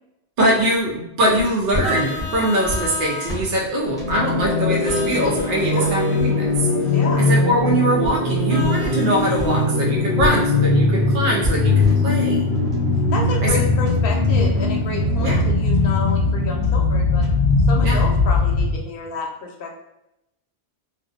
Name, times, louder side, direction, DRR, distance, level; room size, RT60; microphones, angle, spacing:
voice 1, 0.4-6.7 7.3-12.4 13.4-13.7 15.2-15.4 17.8-18.0, equal, 60° right, -3 dB, 0.7 m, -22 dB
sound 1, 1.4-9.6 9.9-18.6, left 1 dB, 5° left, 0.5 m, -32 dB
Vehicle horn car horn honking, 1.8-3.4 4.8-6.3 8.5-9.7, left 2 dB, 30° left, 0.8 m, -33 dB
sound 2, 3.9-18.8, left 2 dB, 80° right, 1.0 m, -20 dB
voice 2, 6.9-7.3 13.1-17.3 17.7-19.7, left 4 dB, 65° left, 1 dB, 0.8 m, -30 dB
2.5 x 2.0 x 2.4 m, 0.84 s
omnidirectional pair, 1.1 m